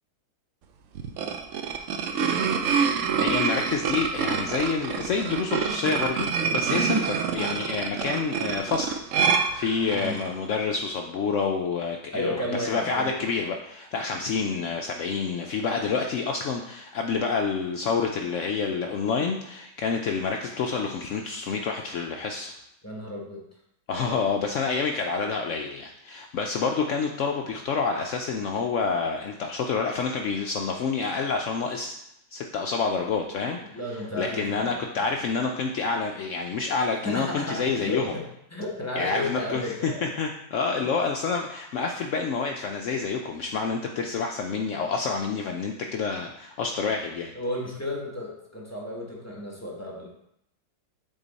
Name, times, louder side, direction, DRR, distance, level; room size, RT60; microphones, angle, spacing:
sound 1, 1.0-10.3, right 6 dB, 70° right, 0.7 m, -26 dB
voice 1, 3.2-9.0 9.5-22.5 23.9-32.0 32.3-33.6 34.1-38.1 39.0-47.3, left 5 dB, 85° left, 3 dB, 0.6 m, -28 dB
voice 2, 12.1-13.1 14.1-14.2 22.8-23.4 23.9-24.2 33.7-35.1 37.0-38.2 38.5-40.1 47.3-50.1, left 1 dB, 10° left, -3 dB, 0.8 m, -33 dB
7.4 x 3.8 x 4.0 m, 0.77 s
omnidirectional pair, 1.9 m